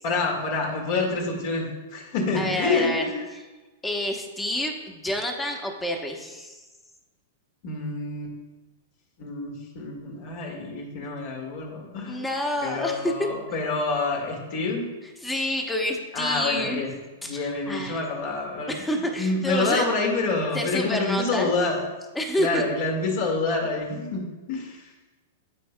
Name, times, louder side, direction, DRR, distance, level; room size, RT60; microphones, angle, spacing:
voice 1, 0.0-3.3 7.6-8.3 9.2-12.3 12.6-14.8 16.1-16.9 17.2-18.7 19.2-21.8 22.4-24.9, left 3 dB, 55° left, 0 dB, 1.8 m, -27 dB
voice 2, 2.3-3.0 3.8-6.6 12.1-13.1 15.2-16.8 17.2-18.0 18.7-19.9 20.5-21.5 22.1-22.6, left 1 dB, 10° left, 2 dB, 1.0 m, -28 dB
13.0 x 4.6 x 2.2 m, 1.2 s
hypercardioid pair, 115°, 0 cm